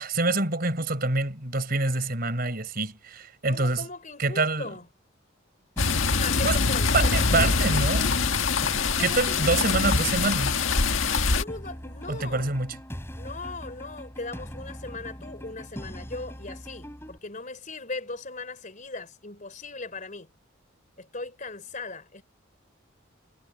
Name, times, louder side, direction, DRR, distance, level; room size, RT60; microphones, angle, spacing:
voice 1, 0.0-3.9 4.2-4.7 6.4-6.6 6.9-8.1 9.0-10.6 12.1-12.8, right 3 dB, 50° right, 4.7 m, -26 dB
voice 2, 3.4-4.9 6.1-7.8 9.0-9.4 11.2-12.6 13.2-20.3 21.0-22.2, left 3 dB, 40° left, 4.1 m, -38 dB
sound 1, 5.8-11.4, left 4 dB, 90° left, 1.6 m, -24 dB
sound 2, 5.8-17.2, equal, 15° left, 4.5 m, -41 dB
head